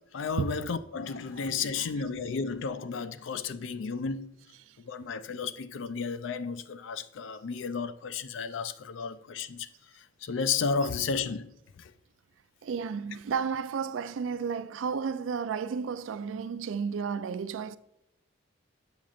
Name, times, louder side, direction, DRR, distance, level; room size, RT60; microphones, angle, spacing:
voice 1, 0.1-4.3 4.9-9.7 10.2-11.5 11.8-11.9, left 5 dB, 70° left, 0.4 m, -33 dB
voice 2, 12.6-17.8, right 6 dB, 80° right, 0.3 m, -32 dB
7.1 x 6.2 x 2.4 m
head